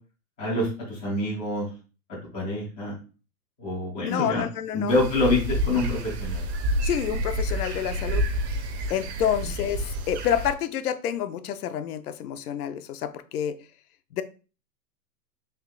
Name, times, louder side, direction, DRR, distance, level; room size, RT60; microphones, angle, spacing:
voice 1, 0.4-1.7 2.3-2.9 3.6-4.4 4.7-6.4, left 2 dB, 10° left, 0.3 m, -26 dB
voice 2, 4.0-4.9 6.8-8.2 8.9-13.5 14.1-14.2, left 9 dB, 65° left, 0.6 m, -28 dB
sound 1, 4.9-10.5, right 1 dB, 40° right, 0.8 m, -29 dB
3.5 x 2.7 x 3.8 m
hypercardioid pair, 140°, 50 cm